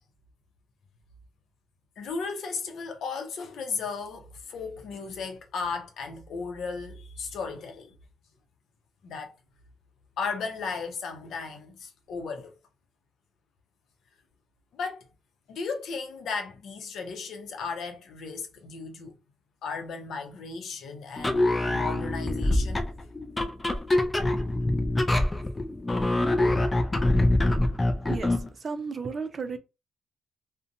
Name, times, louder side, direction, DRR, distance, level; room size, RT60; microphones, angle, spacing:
voice 1, 2.0-7.9 9.0-9.3 10.2-12.5 14.7-15.0 15.5-19.1 19.6-22.8, left 4 dB, 70° left, 0.6 m, -35 dB
sound 1, 21.2-28.5, left 1 dB, 20° left, 0.4 m, -25 dB
voice 2, 28.1-29.6, right 5 dB, 40° right, 0.5 m, -34 dB
2.6 x 2.1 x 2.6 m
cardioid pair, 90°, 0 cm